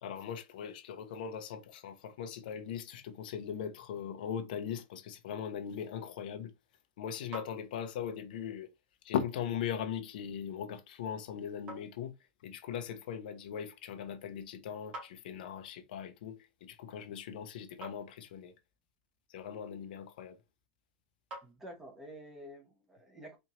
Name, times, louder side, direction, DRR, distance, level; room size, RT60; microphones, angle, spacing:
voice 1, 0.0-6.5 7.0-8.7 9.0-12.1 12.4-18.5 19.3-20.4, left 8 dB, 70° left, 0.8 m, -39 dB
sound 1, 6.4-22.2, right 2 dB, 25° right, 1.7 m, -55 dB
voice 2, 21.4-23.4, equal, 5° right, 0.9 m, -49 dB
4.4 x 2.6 x 2.9 m
supercardioid pair, 170°, 5 cm